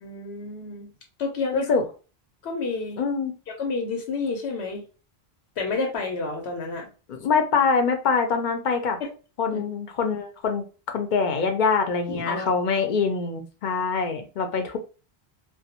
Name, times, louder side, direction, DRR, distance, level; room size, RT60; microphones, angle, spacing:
voice 1, 0.0-0.9 1.2-1.8 2.4-3.0 3.5-4.8 5.6-6.9 9.5-9.6 12.1-12.7, left 3 dB, 85° left, 2 dB, 0.9 m, -30 dB
voice 2, 1.5-1.8 3.0-3.3 7.1-9.0 9.4-10.6 10.9-14.8, left 5 dB, 55° left, 5 dB, 0.6 m, -24 dB
2.2 x 2.1 x 2.8 m, 0.34 s
omnidirectional pair, 1.1 m